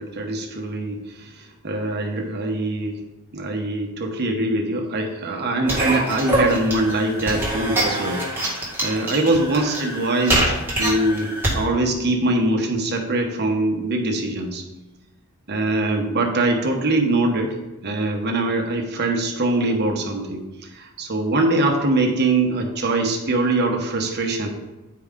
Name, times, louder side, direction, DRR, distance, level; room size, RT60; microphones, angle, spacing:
voice 1, 0.0-3.0 3.3-8.2 8.8-14.6 15.5-17.6 17.8-24.5, right 2 dB, 50° right, 2 dB, 1.0 m, -23 dB
sound 1, 5.7-11.6, right 1 dB, 10° right, 1.9 m, -24 dB
9.5 x 4.7 x 3.7 m, 1.1 s
head